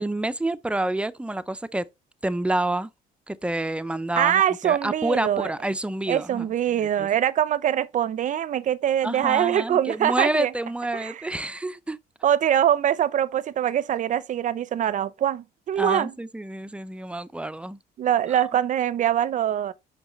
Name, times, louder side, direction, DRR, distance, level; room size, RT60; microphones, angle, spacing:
voice 1, 0.0-1.8 2.2-2.9 3.3-6.5 7.0-7.1 9.0-12.0 15.8-17.8, right 1 dB, 5° right, 0.5 m, -28 dB
voice 2, 4.2-5.5 6.1-10.5 10.9-11.3 12.2-16.1 18.0-19.7, right 10 dB, 50° right, 0.6 m, -23 dB
6.3 x 5.8 x 3.1 m
cardioid pair, 110°, 17 cm